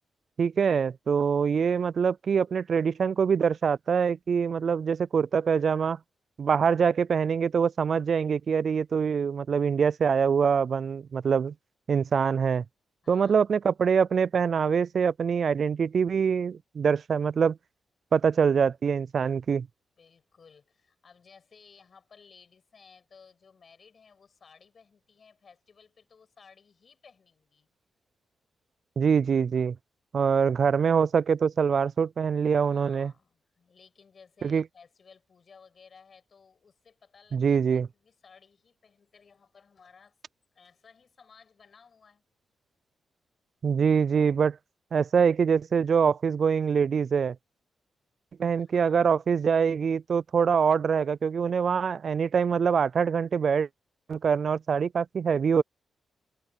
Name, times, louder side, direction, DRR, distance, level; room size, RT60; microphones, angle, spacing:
voice 1, 0.4-6.0 6.4-11.5 11.9-12.6 13.1-17.6 18.1-19.7 29.0-29.8 30.1-33.1 34.4-34.6 37.3-37.9 43.6-44.6 44.9-47.4 48.4-53.7 54.1-55.6, right 6 dB, 60° right, 0.3 m, -24 dB
voice 2, 13.0-13.5 20.0-27.7 32.6-40.2 40.5-42.2 48.6-49.2, left 5 dB, 55° left, 6.1 m, -57 dB
cardioid pair, 65°, 0 cm